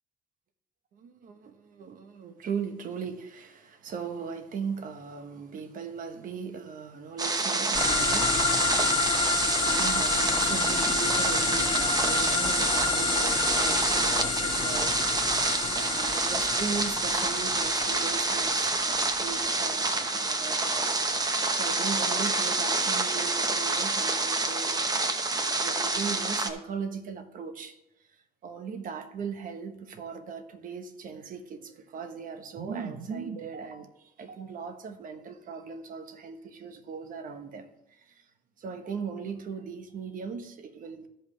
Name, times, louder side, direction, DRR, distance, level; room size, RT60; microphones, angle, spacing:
voice 1, 0.9-38.3 38.6-41.1, right 6 dB, 55° right, 1.2 m, -39 dB
sound 1, 7.2-26.5, right 3 dB, 20° right, 0.9 m, -28 dB
sound 2, 7.7-21.9, left 4 dB, 30° left, 1.5 m, -30 dB
14.5 x 5.6 x 3.3 m
cardioid pair, 110°, 17 cm